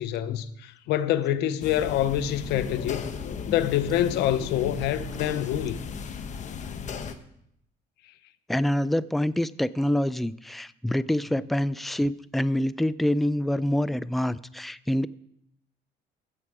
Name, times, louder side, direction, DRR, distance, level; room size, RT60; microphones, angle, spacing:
voice 1, 0.0-3.0 3.5-5.8, left 11 dB, 85° left, 0.7 m, -26 dB
sound 1, 1.6-7.2, left 6 dB, 45° left, 1.0 m, -36 dB
voice 2, 8.5-15.1, left 1 dB, ahead, 0.3 m, -26 dB
14.5 x 7.6 x 4.8 m
cardioid pair, 110°, 17 cm